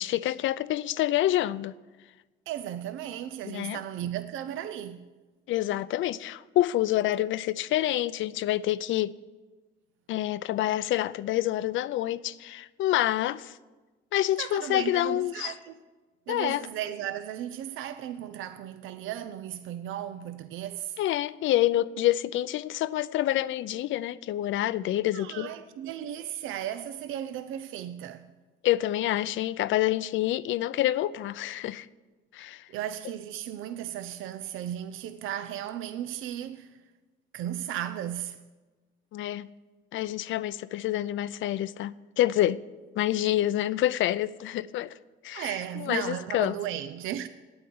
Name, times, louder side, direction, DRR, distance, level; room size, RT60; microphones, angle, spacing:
voice 1, 0.0-1.7 3.4-3.8 5.5-9.1 10.1-13.6 14.1-15.5 16.3-16.7 21.0-25.5 28.6-31.9 32.3-32.7 39.1-39.5 39.9-42.6 43.0-44.9 45.2-46.6, left 14 dB, 75° left, 0.5 m, -27 dB
voice 2, 2.5-5.0 14.4-15.8 16.3-21.0 25.1-28.3 32.7-36.8 37.3-38.4 45.3-47.3, right 11 dB, 85° right, 0.5 m, -35 dB
8.8 x 8.7 x 9.5 m
cardioid pair, 90°, 20 cm